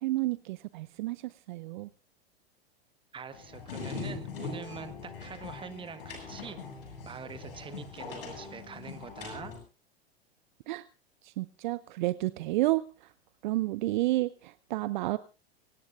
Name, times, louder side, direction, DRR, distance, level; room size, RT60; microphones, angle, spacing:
voice 1, 0.0-1.9 10.7-10.8 11.2-12.8 13.4-15.2, right 18 dB, 50° right, 16 dB, 0.7 m, -30 dB
voice 2, 3.1-6.6 7.0-9.5, right 6 dB, 15° right, 12 dB, 1.5 m, -44 dB
sound 1, 3.3-9.6, left 4 dB, 60° left, 7.5 m, -41 dB
23.5 x 19.0 x 2.5 m, 0.32 s
figure-of-eight pair, 95°, 31 cm